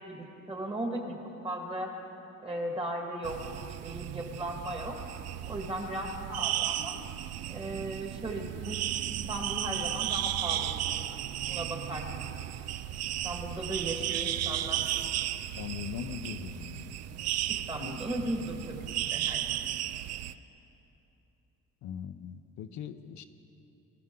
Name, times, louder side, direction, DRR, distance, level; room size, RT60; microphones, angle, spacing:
voice 1, 0.1-1.2 1.4-1.9 2.4-3.4 3.8-5.0 5.5-7.0 7.5-8.8 9.3-11.2 11.5-12.3 13.2-15.1 17.5-18.8 19.1-19.7, right 1 dB, 20° right, 1 dB, 1.7 m, -36 dB
sound 1, 3.2-20.3, right 12 dB, 60° right, 0.4 m, -34 dB
voice 2, 15.6-16.9 21.8-23.2, left 9 dB, 65° left, 8 dB, 0.7 m, -40 dB
24.0 x 14.0 x 3.8 m, 3.0 s
cardioid pair, 165°, 30 cm